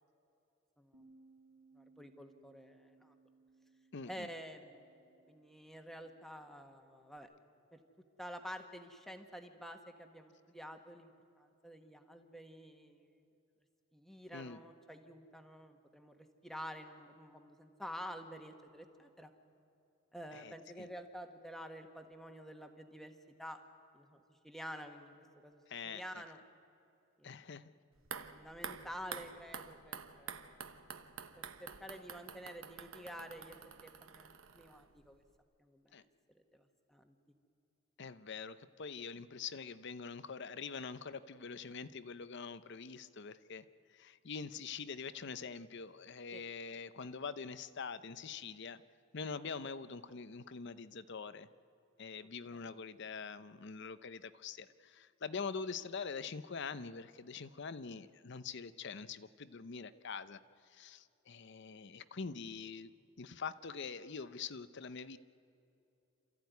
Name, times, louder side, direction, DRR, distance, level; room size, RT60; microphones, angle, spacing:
Bass guitar, 0.9-7.2, right 3 dB, 55° right, 3.4 m, -66 dB
voice 1, 1.7-3.1 4.1-4.8 5.3-7.3 7.7-7.8 8.2-11.1 11.4-13.1 13.9-19.3 20.1-23.6 23.9-26.4 27.2-27.4 28.3-30.6 31.4-33.6 33.8-35.2 35.6-36.1 36.3-37.1 41.7-41.8 46.3-46.4 52.5-52.6, equal, ahead, 5 dB, 1.5 m, -49 dB
voice 2, 3.9-4.3 14.3-14.6 20.3-20.9 25.7-26.2 27.2-27.7 35.9-36.0 38.0-48.8 49.1-51.5 52.0-60.4 60.7-62.9 63.2-65.2, left 5 dB, 55° left, 13 dB, 0.7 m, -44 dB
sound 1, 28.0-35.1 35.3-35.4, right 6 dB, 75° right, 1.1 m, -49 dB
28.0 x 14.5 x 9.4 m, 2.7 s
head